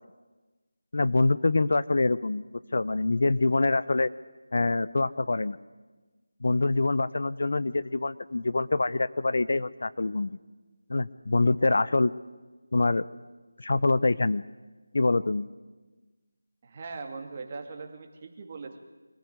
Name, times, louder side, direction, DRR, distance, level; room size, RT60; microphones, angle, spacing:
voice 1, 0.9-2.4 2.7-4.1 4.5-5.6 6.4-10.4 10.9-12.1 12.7-13.1 13.6-14.5 14.9-15.5, left 3 dB, 60° left, 17 dB, 0.7 m, -25 dB
voice 2, 16.6-18.8, right 4 dB, 30° right, 4 dB, 2.5 m, -40 dB
24.0 x 15.5 x 9.6 m, 1.3 s
figure-of-eight pair, 165°, 0 cm